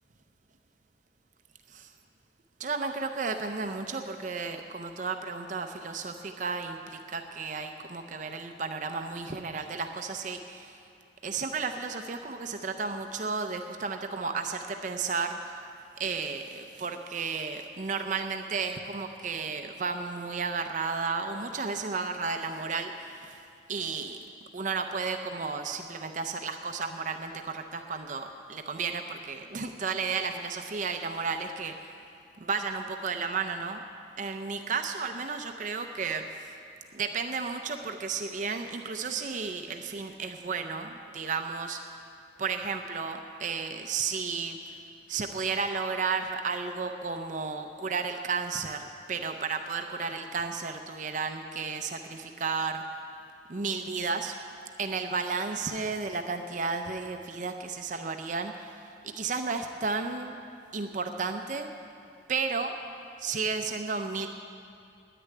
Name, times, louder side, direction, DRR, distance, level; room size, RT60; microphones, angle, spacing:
voice 1, 2.6-10.8 11.2-15.7 16.0-23.4 23.7-24.2 24.5-31.9 32.4-33.8 34.2-36.2 36.9-41.8 42.4-44.8 45.1-52.8 53.5-54.4 54.8-58.8 59.0-60.4 60.7-61.7 62.3-62.7 63.2-64.3, right 4 dB, 45° right, 6 dB, 0.5 m, -33 dB
10.0 x 9.2 x 9.8 m, 2.5 s
head